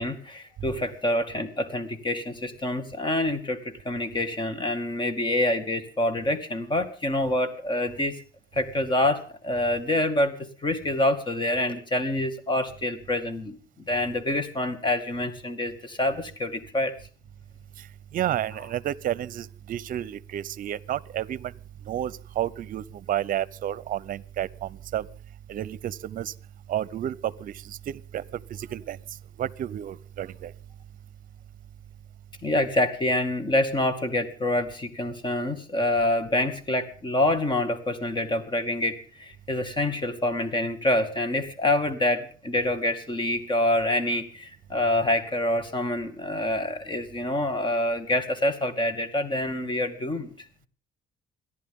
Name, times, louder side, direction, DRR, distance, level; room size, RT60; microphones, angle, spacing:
voice 1, 0.0-8.2 8.5-13.6 13.9-16.9 32.4-50.3, left 1 dB, 25° left, 2.1 m, -26 dB
voice 2, 18.1-21.5 21.9-25.1 25.5-26.3 26.7-28.2 28.5-29.0 29.4-30.5, right 11 dB, 55° right, 0.7 m, -31 dB
28.0 x 11.0 x 3.7 m
cardioid pair, 110°, 17 cm